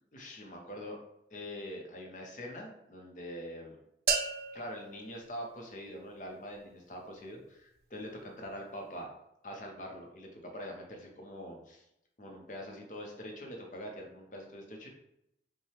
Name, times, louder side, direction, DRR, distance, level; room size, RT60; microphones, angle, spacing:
voice 1, 0.1-1.0 1.3-3.8 4.5-9.1 9.4-11.8 12.2-14.9, equal, 45° left, 1 dB, 0.8 m, -44 dB
sound 1, 4.1-6.1, right 6 dB, 60° right, 0.4 m, -35 dB
5.4 x 2.3 x 3.4 m, 0.80 s
head